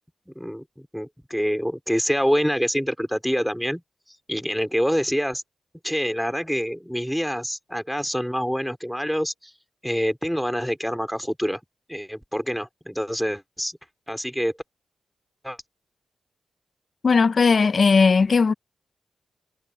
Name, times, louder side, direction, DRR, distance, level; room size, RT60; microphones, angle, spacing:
voice 1, 0.3-3.8 4.3-5.4 5.8-9.5 9.8-11.6 11.9-13.8 14.1-14.5 15.4-15.6, equal, ahead, 4.2 m, -26 dB
voice 2, 17.0-18.5, left 4 dB, 55° left, 1.1 m, -17 dB
cardioid pair, 50°, 0 cm